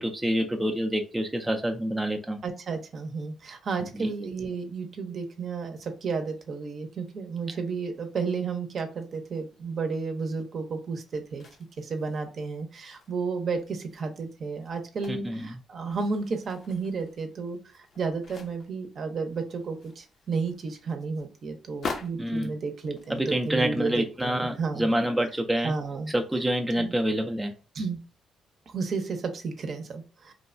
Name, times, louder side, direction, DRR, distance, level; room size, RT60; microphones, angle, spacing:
voice 1, 0.0-2.4 4.0-4.1 15.1-15.4 22.2-22.5 23.1-25.7 26.1-27.5, right 1 dB, 10° right, 3 dB, 0.3 m, -27 dB
voice 2, 2.4-11.5 11.8-24.9 25.6-26.1 26.8-26.9 27.7-28.0 28.7-30.3, right 4 dB, 50° right, 6 dB, 0.6 m, -32 dB
sound 1, 11.0-12.4 12.8-15.4 15.8-18.8 19.2-24.9 25.4-25.5, left 4 dB, 55° left, 0.6 m, -44 dB
3.0 x 2.1 x 2.4 m, 0.35 s
cardioid pair, 90°, 0 cm